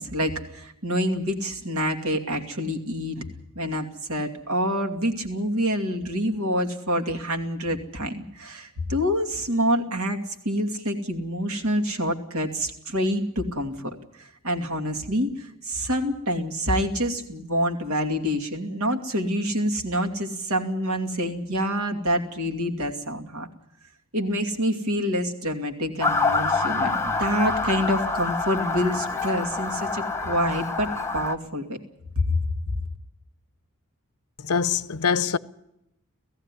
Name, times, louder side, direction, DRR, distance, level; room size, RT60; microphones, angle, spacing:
voice 1, 0.0-3.2 3.6-10.2 10.4-23.5 24.1-31.8 32.2-32.7, equal, 70° right, 2.6 m, -27 dB
Motor vehicle (road) / Siren, 26.0-31.4, left 3 dB, 10° left, 1.1 m, -26 dB
voice 2, 34.4-35.4, left 6 dB, 75° left, 0.7 m, -24 dB
17.5 x 15.5 x 9.9 m
head